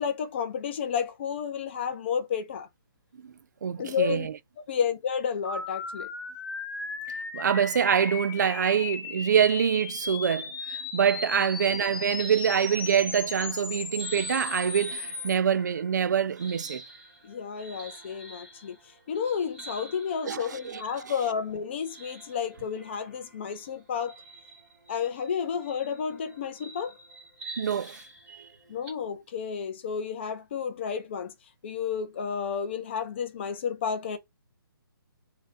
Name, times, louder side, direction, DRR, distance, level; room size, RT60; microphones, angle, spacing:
voice 1, 0.0-2.7 3.8-4.3 4.7-6.1 17.2-18.8 19.1-24.2 24.9-26.9 28.7-31.3 31.6-34.2, left 7 dB, 30° left, 0.5 m, -31 dB
voice 2, 3.6-4.3 7.3-16.8 20.3-21.1 27.6-28.0 28.3-28.5, right 8 dB, 50° right, 0.4 m, -25 dB
sound 1, 5.4-15.3, left 3 dB, 65° left, 1.1 m, -36 dB
sound 2, 11.8-13.3 13.7-28.9, right 3 dB, ahead, 1.2 m, -48 dB
3.1 x 2.7 x 3.7 m
hypercardioid pair, 170°, 12 cm